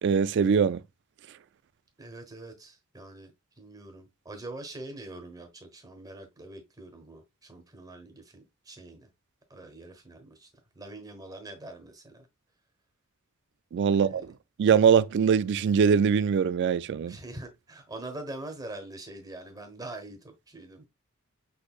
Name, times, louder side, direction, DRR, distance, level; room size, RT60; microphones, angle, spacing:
voice 1, 0.0-0.8 13.7-14.2 14.6-17.2, right 6 dB, 55° right, 0.3 m, -22 dB
voice 2, 2.0-3.3 3.6-9.1 9.5-10.5 10.7-12.3 14.0-14.2 17.1-20.9, right 2 dB, 15° right, 1.1 m, -44 dB
6.3 x 3.2 x 2.4 m
head